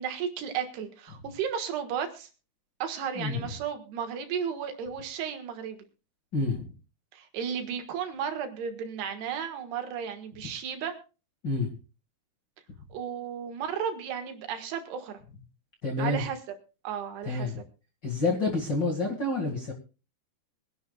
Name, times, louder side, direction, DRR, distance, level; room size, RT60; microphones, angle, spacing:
voice 1, 0.0-2.3 2.8-5.8 7.1-10.9 12.9-15.2 16.0-16.4 16.9-17.5, right 7 dB, 80° right, 6 dB, 3.6 m, -34 dB
voice 2, 3.1-3.5 6.3-6.7 11.4-11.7 15.8-16.2 17.2-17.6 18.0-19.7, left 3 dB, 40° left, 1 dB, 1.8 m, -28 dB
23.5 x 11.0 x 2.3 m, 0.33 s
omnidirectional pair, 4.7 m